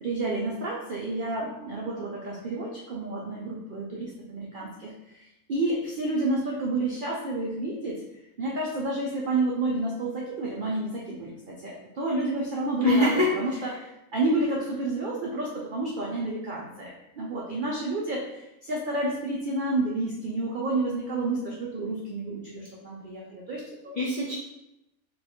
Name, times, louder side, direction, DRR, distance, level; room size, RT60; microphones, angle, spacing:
voice 1, 0.0-8.0 8.4-24.0, right 2 dB, 70° right, -4 dB, 0.4 m, -30 dB
voice 2, 12.8-13.7 24.0-24.3, left 2 dB, 80° left, -5 dB, 0.4 m, -24 dB
2.8 x 2.3 x 4.2 m, 0.89 s
omnidirectional pair, 1.5 m